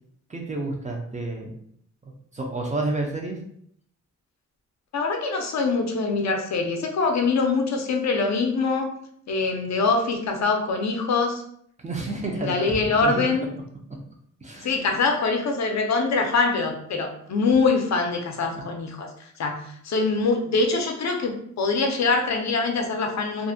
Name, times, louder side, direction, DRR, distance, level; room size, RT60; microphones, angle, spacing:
voice 1, 0.3-1.5 2.3-3.4 11.8-13.3 14.4-14.9 18.5-18.6, right 2 dB, 25° right, 0 dB, 0.4 m, -30 dB
voice 2, 4.9-8.9 9.3-11.4 12.3-13.5 14.6-19.1 19.4-23.5, left 4 dB, 60° left, 3 dB, 0.4 m, -24 dB
2.4 x 2.0 x 2.6 m, 0.67 s
wide cardioid pair, 130°, 31 cm